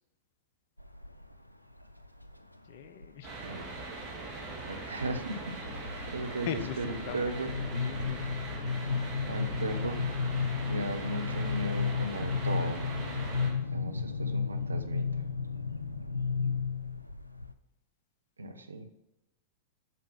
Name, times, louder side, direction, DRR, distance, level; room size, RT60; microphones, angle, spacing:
sound 1, 0.8-1.3 1.8-2.4 3.0-3.9 4.3-4.6 4.9-17.5, left 5 dB, 85° left, 0.5 m, -33 dB
voice 1, 2.7-3.3 6.4-7.4 7.7-8.3, left 10 dB, 50° left, 13 dB, 0.7 m, -40 dB
sound 2, 3.2-13.5, right 3 dB, 25° right, 2.9 m, -41 dB
voice 2, 4.6-5.6 6.1-7.5 9.3-10.0 10.7-12.8 13.7-15.2 18.4-18.9, right 1 dB, 75° right, 6 dB, 0.9 m, -36 dB
8.4 x 6.0 x 5.7 m, 0.94 s
figure-of-eight pair, 95°, 0 cm